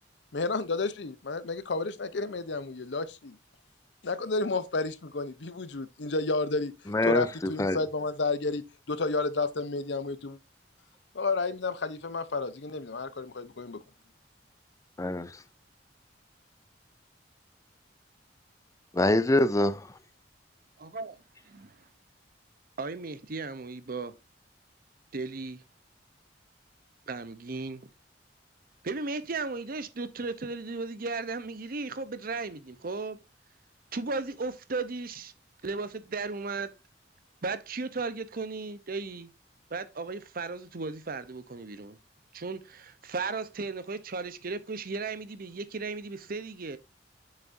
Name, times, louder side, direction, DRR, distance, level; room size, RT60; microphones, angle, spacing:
voice 1, 0.3-3.4 4.0-6.7 7.0-10.4 11.1-13.8, left 3 dB, 70° left, 0.8 m, -31 dB
voice 2, 6.9-7.8 15.0-15.4 18.9-19.9, left 2 dB, 20° left, 0.4 m, -25 dB
voice 3, 20.8-21.2 21.5-21.7 22.8-24.2 25.1-25.6 27.1-27.9 28.8-33.2 33.9-35.3 35.6-36.7 37.4-39.3 39.7-42.0 42.3-46.8, right 3 dB, 50° right, 0.8 m, -35 dB
7.2 x 6.6 x 2.6 m
head